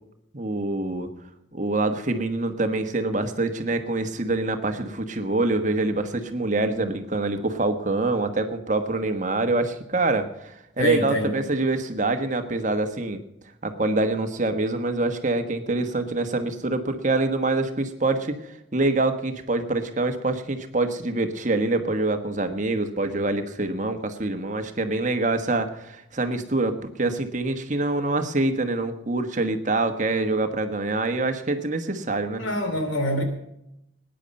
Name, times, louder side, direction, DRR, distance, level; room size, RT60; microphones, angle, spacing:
voice 1, 0.3-1.1 1.5-13.2 13.6-32.4, right 2 dB, 40° right, 7 dB, 1.3 m, -25 dB
voice 2, 10.8-11.3 32.4-33.2, left 1 dB, 85° left, 5 dB, 3.1 m, -25 dB
20.0 x 10.0 x 5.3 m, 0.80 s
head